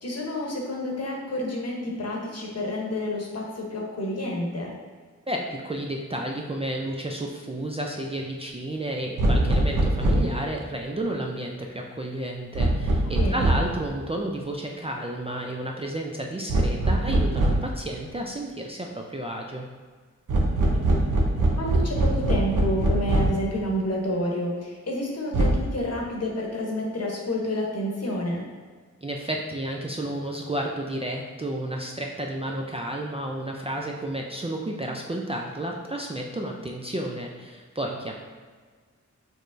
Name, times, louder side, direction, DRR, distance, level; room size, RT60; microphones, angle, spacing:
voice 1, 0.0-4.7 13.1-13.7 20.9-21.0 21.6-28.4, left 1 dB, 55° left, -1 dB, 1.0 m, -29 dB
voice 2, 5.3-19.6 29.0-38.1, right 1 dB, 20° right, 0 dB, 0.4 m, -31 dB
sound 1, 9.2-10.4 12.6-13.8 16.5-17.7 20.3-23.5 25.3-25.5, right 1 dB, 90° right, 0.8 m, -22 dB
6.5 x 3.1 x 2.6 m, 1.5 s
wide cardioid pair, 120°, 31 cm